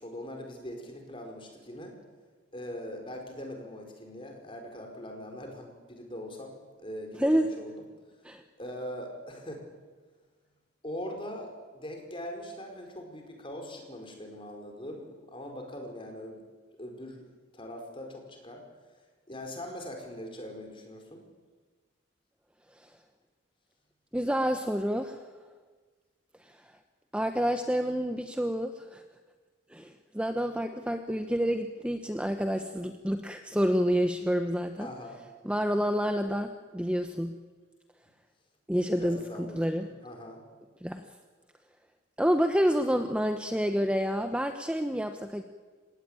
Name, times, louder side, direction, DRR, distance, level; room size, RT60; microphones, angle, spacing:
voice 1, 0.0-2.0 2.5-6.5 6.8-7.7 8.6-9.6 10.8-16.4 16.8-17.2 17.5-18.6 19.3-21.2 34.8-35.2 38.9-40.4, left 1 dB, 25° left, 3 dB, 5.1 m, -41 dB
voice 2, 24.1-25.2 26.4-26.6 27.1-29.0 29.7-34.9 35.4-37.4 38.7-39.9 40.8-41.0 42.2-45.4, equal, 5° right, 6 dB, 0.9 m, -28 dB
29.0 x 17.5 x 9.1 m, 1.4 s
head